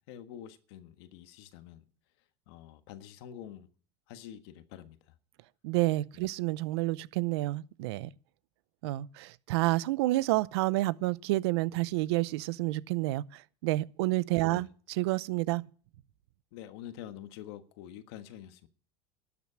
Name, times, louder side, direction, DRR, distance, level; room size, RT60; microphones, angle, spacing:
voice 1, 0.1-1.8 2.5-3.7 4.1-5.0 6.2-6.3 14.4-14.7 16.5-18.7, left 11 dB, 80° left, 1.4 m, -46 dB
voice 2, 5.6-8.1 8.8-15.6, right 19 dB, 85° right, 0.6 m, -29 dB
12.0 x 7.4 x 9.8 m
supercardioid pair, 120°, 13 cm